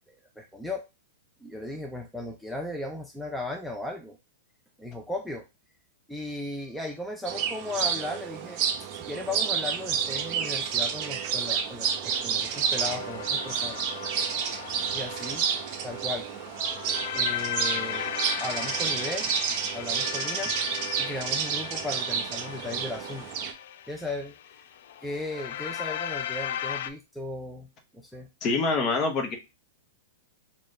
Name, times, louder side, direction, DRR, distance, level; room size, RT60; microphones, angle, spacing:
voice 1, 0.1-0.8 1.4-4.2 4.8-5.4 6.1-13.8 14.9-15.4 15.8-16.3 17.1-18.1 18.4-19.3 19.7-20.5 21.0-23.2 23.9-24.6 25.0-27.7 27.9-28.3, left 1 dB, ahead, 0 dB, 0.6 m, -36 dB
sound 1, 7.3-23.5, right 7 dB, 40° right, 0.8 m, -30 dB
sound 2, 12.5-26.9, left 10 dB, 65° left, 0.4 m, -37 dB
voice 2, 28.4-29.4, left 3 dB, 30° left, 5 dB, 0.9 m, -25 dB
4.0 x 2.4 x 3.2 m, 0.25 s
hypercardioid pair, 140°, 0 cm